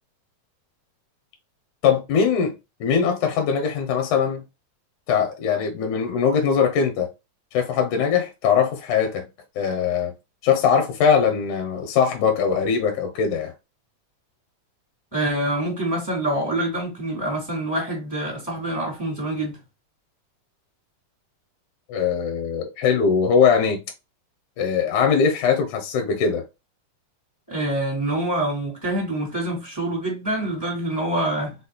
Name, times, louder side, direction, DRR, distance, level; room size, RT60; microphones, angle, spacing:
voice 1, 1.8-2.5 2.8-4.4 5.1-7.1 7.5-9.2 9.6-10.1 10.4-13.5 21.9-23.8 24.6-26.4, left 6 dB, 70° left, 2.3 m, -21 dB
voice 2, 15.1-19.6 27.5-31.5, right 1 dB, 5° left, 2.0 m, -26 dB
4.9 x 4.2 x 2.3 m
omnidirectional pair, 3.9 m